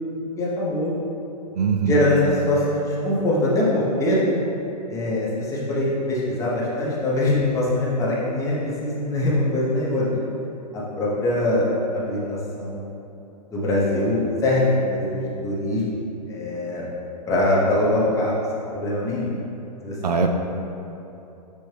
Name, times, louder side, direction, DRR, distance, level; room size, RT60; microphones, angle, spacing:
voice 1, 0.4-1.0 1.9-4.2 4.9-10.3 10.7-11.7 11.9-12.9 13.5-16.0 16.3-16.9 17.3-18.3 18.7-19.3 19.8-19.9, left 1 dB, 15° left, -6 dB, 0.9 m, -23 dB
voice 2, 1.6-2.0 20.0-20.3, right 5 dB, 75° right, 4 dB, 0.4 m, -21 dB
6.3 x 2.5 x 3.3 m, 2.8 s
hypercardioid pair, 115°, 21 cm